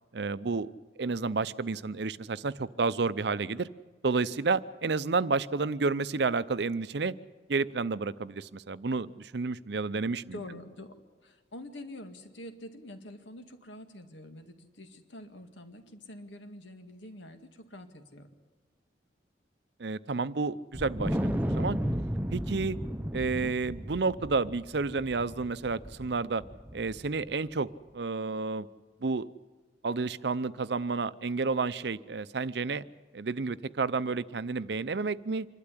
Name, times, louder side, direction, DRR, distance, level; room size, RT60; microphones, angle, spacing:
voice 1, 0.1-0.7 1.0-3.7 4.0-7.1 7.5-10.2 19.8-21.8 22.3-22.8 23.1-26.4 26.7-27.7 27.9-28.7 29.0-29.3 29.8-32.8 33.1-35.5, right 4 dB, 65° right, 16 dB, 0.6 m, -30 dB
voice 2, 10.3-18.3, left 1 dB, 90° left, 6 dB, 2.1 m, -46 dB
Wind, 20.7-27.3, equal, 10° right, 0.7 m, -34 dB
26.0 x 12.0 x 9.8 m, 1.4 s
head